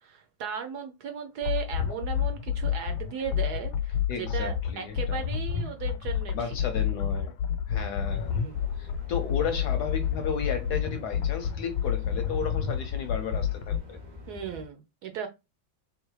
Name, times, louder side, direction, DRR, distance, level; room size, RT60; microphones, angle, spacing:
voice 1, 0.0-6.5 8.3-8.6 14.3-15.3, right 8 dB, 70° right, 1.0 m, -36 dB
sound 1, 1.4-13.8, left 8 dB, 90° left, 1.4 m, -29 dB
voice 2, 4.1-5.2 6.3-7.3 7.7-8.4 8.8-14.0, left 6 dB, 70° left, 1.0 m, -34 dB
sound 2, 8.0-14.6, left 3 dB, 85° right, 0.4 m, -46 dB
3.7 x 3.1 x 3.1 m
omnidirectional pair, 2.1 m